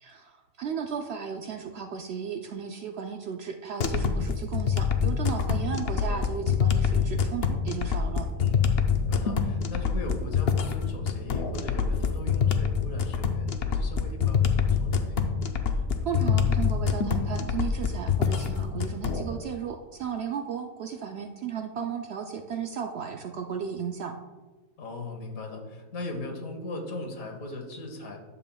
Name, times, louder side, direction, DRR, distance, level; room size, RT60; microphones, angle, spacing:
voice 1, 0.0-8.3 16.0-24.1, right 7 dB, 65° right, 5 dB, 0.7 m, -35 dB
sound 1, 3.8-19.2, left 6 dB, 55° left, 0.7 m, -25 dB
voice 2, 8.4-15.2 24.8-28.2, left 2 dB, 85° left, 3 dB, 1.6 m, -39 dB
11.0 x 7.2 x 2.3 m, 1.3 s
omnidirectional pair, 1.5 m